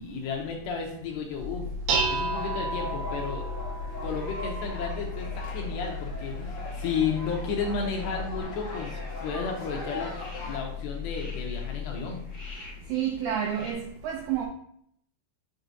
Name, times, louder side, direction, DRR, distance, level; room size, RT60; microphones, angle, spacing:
voice 1, 0.0-1.6 2.1-3.4 4.0-10.1 10.4-12.2, left 5 dB, 75° left, 2.7 m, -33 dB
Dishes pots and pans, 1.4-8.4, right 1 dB, 70° right, 3.0 m, -33 dB
sound 1, 1.9-10.6, left 2 dB, 50° left, 1.6 m, -41 dB
sound 2, 3.9-13.7, left 1 dB, 30° left, 2.6 m, -51 dB
voice 2, 12.9-14.5, right 9 dB, 85° right, 2.3 m, -29 dB
7.0 x 6.0 x 2.7 m
omnidirectional pair, 5.5 m